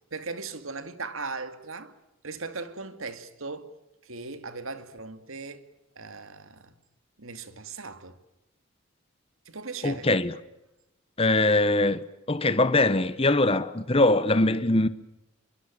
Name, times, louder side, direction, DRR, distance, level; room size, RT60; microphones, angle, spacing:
voice 1, 0.1-1.9 2.2-3.7 4.0-5.7 6.0-6.7 7.2-8.2 9.5-10.1, right 4 dB, 70° right, 2.4 m, -38 dB
voice 2, 9.8-10.3 11.2-14.9, left 2 dB, 25° left, 1.1 m, -22 dB
26.0 x 23.5 x 8.9 m
head